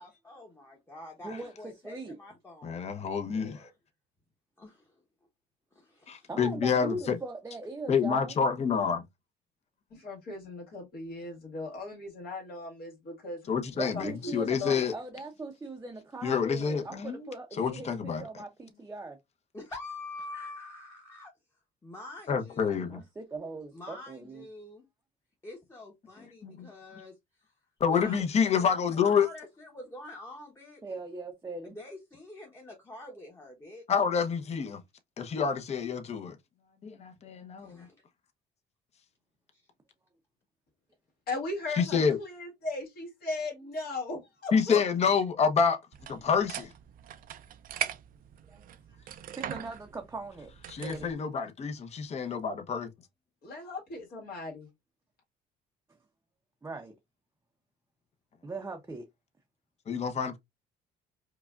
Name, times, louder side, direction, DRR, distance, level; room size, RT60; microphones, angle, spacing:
voice 1, 0.0-3.7 4.6-4.9 5.7-6.3 19.5-21.3 21.8-23.0 23.7-24.9 25.4-27.1 27.9-30.8 31.6-33.8 37.6-37.9 39.5-39.6, left 2 dB, 15° left, 1.1 m, -46 dB
voice 2, 1.2-2.2 6.3-8.4 13.7-19.2 22.9-24.4 30.8-31.8 48.5-49.1 49.4-51.1 56.6-56.9 58.4-59.1, right 3 dB, 15° right, 0.6 m, -40 dB
voice 3, 2.6-3.7 6.1-7.2 7.9-9.0 13.5-14.9 16.2-17.3 17.6-18.2 22.3-23.0 26.4-27.0 27.8-29.3 33.9-34.8 35.2-36.4 36.8-37.8 41.8-42.2 44.5-45.8 46.1-46.7 50.7-52.9 59.9-60.4, left 6 dB, 40° left, 0.9 m, -28 dB
voice 4, 9.9-13.7 13.9-14.3 14.6-14.8 41.3-44.8 53.4-54.7, left 2 dB, 65° left, 1.9 m, -37 dB
sound 1, 45.9-51.1, right 10 dB, 55° right, 0.5 m, -41 dB
4.9 x 2.3 x 2.4 m
cardioid pair, 110°, 17 cm